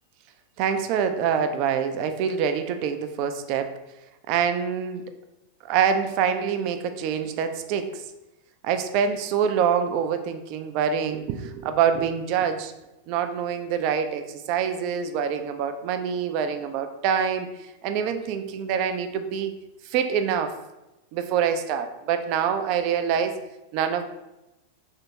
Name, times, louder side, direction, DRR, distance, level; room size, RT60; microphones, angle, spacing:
voice 1, 0.6-3.7 4.3-5.0 5.7-8.0 8.6-12.7 13.1-19.5 19.8-20.6 21.1-23.4 23.7-24.0, right 7 dB, 45° right, 8 dB, 0.3 m, -25 dB
3.2 x 2.8 x 2.8 m, 0.97 s
figure-of-eight pair, 90°, 0 cm